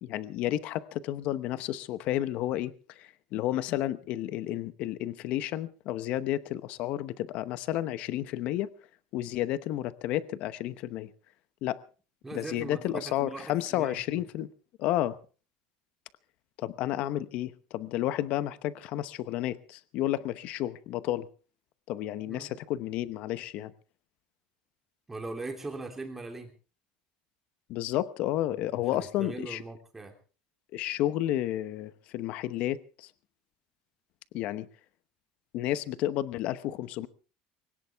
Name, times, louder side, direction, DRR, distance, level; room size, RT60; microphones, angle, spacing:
voice 1, 0.0-8.7 9.1-11.1 11.6-11.8 12.3-14.5 14.8-15.2 16.6-21.3 21.9-23.7 27.7-29.6 30.7-33.1 34.3-34.7 35.5-37.1, left 13 dB, 50° left, 0.9 m, -31 dB
voice 2, 12.2-14.0 22.3-22.5 25.1-26.5 28.5-28.6 28.9-30.1, right 3 dB, 10° right, 3.1 m, -40 dB
21.5 x 18.0 x 3.5 m
cardioid pair, 160°, 3 cm